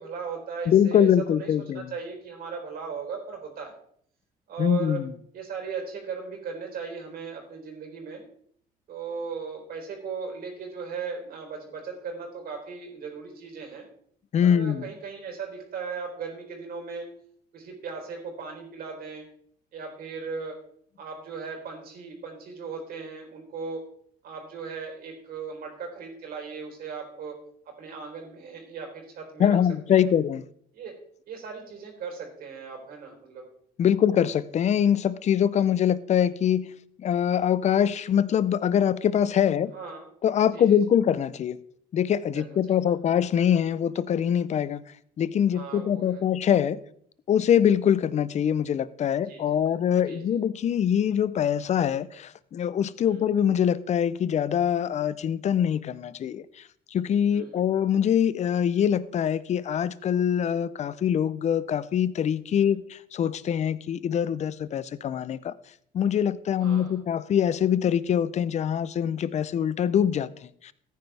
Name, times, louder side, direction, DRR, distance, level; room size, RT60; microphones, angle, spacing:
voice 1, 0.0-3.7 4.5-5.0 5.3-8.2 8.9-13.9 14.4-17.1 17.5-19.3 19.7-20.6 21.0-23.8 24.2-27.4 27.7-29.6 29.9-30.1 30.7-31.0 31.3-33.4 33.8-33.9 39.7-40.1 40.5-40.8 42.4-42.8 45.5-46.2 49.2-49.8 50.0-50.4 53.0-53.3 57.3-57.6 62.6-62.8 66.6-67.0, right 5 dB, 60° right, 3.8 m, -37 dB
voice 2, 0.7-1.9 4.6-5.1 14.3-14.8 29.4-30.4 33.8-36.7 37.0-39.7 40.2-41.6 41.9-44.8 45.2-46.8 47.3-56.4 56.9-65.5 65.9-70.7, left 9 dB, 40° left, 0.6 m, -24 dB
14.5 x 9.5 x 3.4 m
cardioid pair, 110°, 17 cm